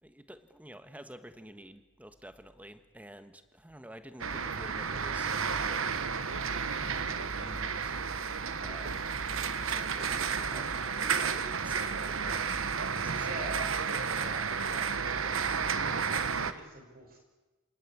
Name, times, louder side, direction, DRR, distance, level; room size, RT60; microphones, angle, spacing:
voice 1, 0.0-6.0 7.0-8.0 8.6-9.1 9.6-12.4, right 1 dB, 5° right, 10 dB, 1.3 m, -50 dB
sound 1, 4.2-16.5, right 6 dB, 80° right, 1.2 m, -32 dB
voice 2, 13.2-17.2, right 1 dB, 45° right, 3 dB, 5.0 m, -45 dB
28.0 x 18.5 x 8.5 m, 1.2 s
head